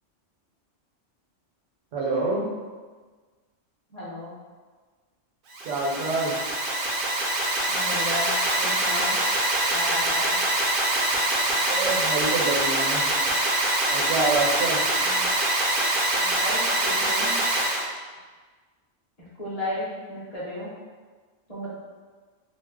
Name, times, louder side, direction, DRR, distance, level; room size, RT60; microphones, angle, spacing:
voice 1, 1.9-2.5 5.6-6.3 11.6-13.0 13.9-14.8, right 3 dB, 80° right, -3 dB, 1.1 m, -26 dB
voice 2, 3.9-4.3 7.7-9.2 9.7-10.4 15.0-15.2 16.2-17.3 19.4-20.7 21.5-21.7, left 1 dB, 35° left, -8 dB, 0.9 m, -34 dB
Alarm, 5.5-17.8, right 1 dB, 60° right, 0.6 m, -24 dB
2.7 x 2.0 x 3.5 m, 1.4 s
omnidirectional pair, 1.3 m